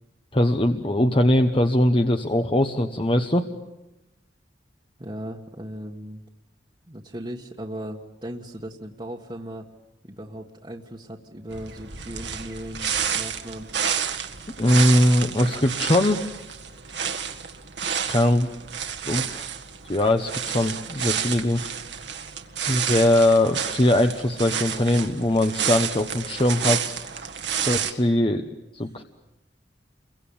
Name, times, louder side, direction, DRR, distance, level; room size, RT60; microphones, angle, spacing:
voice 1, 0.3-3.5 14.6-16.2 18.1-18.5 19.1-19.5 19.9-21.6 22.7-27.0 27.6-28.4 28.7-29.0, left 1 dB, 30° left, 6 dB, 1.1 m, -21 dB
voice 2, 5.0-6.2 6.9-9.7 10.0-13.7 28.8-28.9, right 1 dB, 25° right, -1 dB, 1.6 m, -37 dB
sound 1, 11.5-27.9, right 8 dB, 70° right, 1.8 m, -30 dB
29.5 x 23.0 x 8.8 m, 0.95 s
head